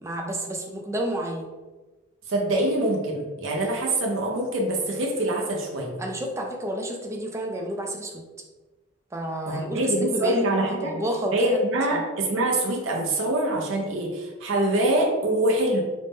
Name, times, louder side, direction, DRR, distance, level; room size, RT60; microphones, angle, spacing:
voice 1, 0.0-1.5 6.0-8.2 9.1-10.5 10.8-11.6 11.9-12.0, right 1 dB, 15° right, 1 dB, 0.4 m, -30 dB
voice 2, 2.3-6.0 9.5-11.0 11.3-15.8, right 1 dB, 60° right, -1 dB, 0.6 m, -24 dB
3.9 x 2.1 x 3.4 m, 1.2 s
head